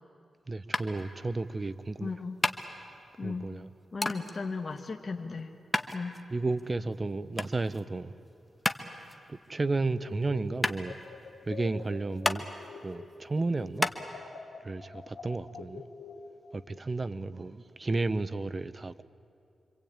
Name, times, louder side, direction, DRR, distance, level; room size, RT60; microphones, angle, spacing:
voice 1, 0.5-2.1 3.2-3.7 6.3-8.2 9.3-11.0 11.5-12.4 12.8-13.9 14.6-15.8 16.5-19.0, right 3 dB, 30° right, 0.8 m, -32 dB
sound 1, 0.7-14.0, left 1 dB, 15° left, 1.3 m, -35 dB
voice 2, 2.0-2.4 3.2-3.5 3.9-5.5 5.9-6.2, left 4 dB, 45° left, 1.5 m, -36 dB
sound 2, 10.0-13.2 13.5-16.5, left 5 dB, 75° left, 2.3 m, -46 dB
26.5 x 25.0 x 8.9 m
cardioid pair, 90°, 0 cm